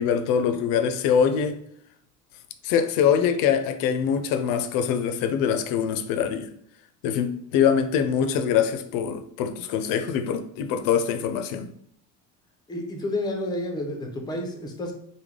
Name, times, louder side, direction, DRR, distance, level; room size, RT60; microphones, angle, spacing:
voice 1, 0.0-1.6 2.6-6.5 7.0-11.7, left 7 dB, 75° left, 0.5 m, -23 dB
voice 2, 12.7-14.9, left 1 dB, 15° left, 0.5 m, -30 dB
3.2 x 2.2 x 3.5 m
cardioid pair, 150°, 33 cm